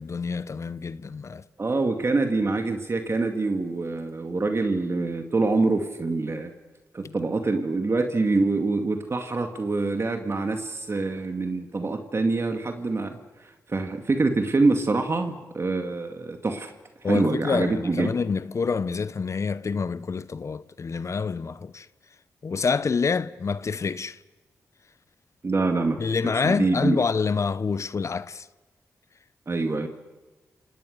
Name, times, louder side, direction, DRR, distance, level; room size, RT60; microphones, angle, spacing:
voice 1, 0.0-1.4 7.0-7.1 17.0-21.9 22.4-24.2 26.0-28.5, left 5 dB, 50° left, 0.8 m, -27 dB
voice 2, 1.6-6.5 6.9-13.2 13.7-16.7 17.1-18.1 25.4-27.0 29.5-29.9, right 3 dB, 45° right, 2.1 m, -25 dB
29.0 x 19.0 x 6.6 m
supercardioid pair, 45°, 6 cm